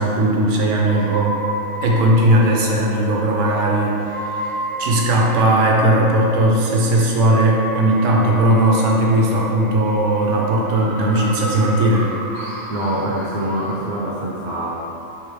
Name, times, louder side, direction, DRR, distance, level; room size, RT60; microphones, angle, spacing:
voice 1, 0.0-1.4 1.8-3.9 4.3-12.1, right 1 dB, 65° right, -2 dB, 1.0 m, -17 dB
sound 1, 0.8-13.9, right 1 dB, 40° right, 1.0 m, -32 dB
voice 2, 12.7-14.7, right 1 dB, 85° right, -6 dB, 0.4 m, -24 dB
4.6 x 3.2 x 3.2 m, 2.9 s
omnidirectional pair, 1.5 m